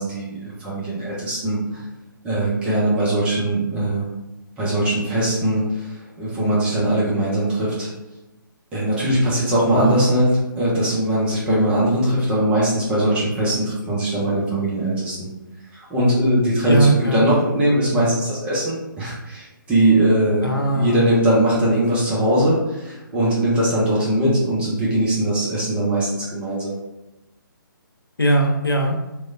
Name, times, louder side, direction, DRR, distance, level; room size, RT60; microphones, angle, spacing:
voice 1, 0.0-1.8 2.2-4.1 4.6-7.9 8.7-10.3 10.6-15.3 15.9-20.4 20.7-26.7, right 1 dB, 10° right, -7 dB, 0.5 m, -20 dB
voice 2, 9.7-10.2 16.7-17.3 20.4-21.1 28.2-29.0, right 1 dB, 90° left, 1 dB, 0.6 m, -20 dB
2.9 x 2.1 x 2.4 m, 1.0 s
figure-of-eight pair, 140°, 12 cm